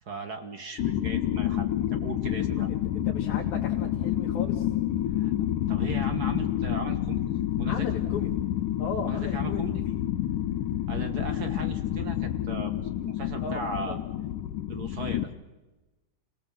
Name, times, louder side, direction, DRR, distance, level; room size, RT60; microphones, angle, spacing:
voice 1, 0.0-2.7 5.1-5.3 5.7-7.9 9.0-9.8 10.9-12.7 13.0-14.0 14.7-15.3, right 3 dB, 45° right, 7 dB, 1.3 m, -37 dB
sound 1, 0.8-15.2, left 12 dB, 85° left, 2.5 m, -29 dB
voice 2, 3.1-4.7 7.6-8.4 8.8-10.0 13.4-14.0, left 5 dB, 70° left, 0 dB, 3.1 m, -36 dB
29.5 x 17.5 x 7.4 m, 1.1 s
omnidirectional pair, 3.6 m